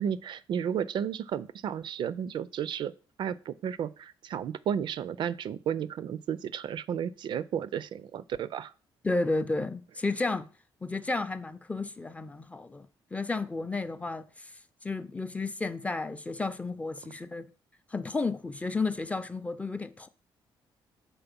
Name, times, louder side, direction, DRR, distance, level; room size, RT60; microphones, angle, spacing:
voice 1, 0.0-2.9 3.2-8.7, right 8 dB, 60° right, 0.4 m, -33 dB
voice 2, 9.0-10.5 10.8-14.5 14.8-17.5 17.9-20.1, left 3 dB, 15° left, 0.4 m, -32 dB
5.8 x 4.3 x 5.2 m
cardioid pair, 115°, 9 cm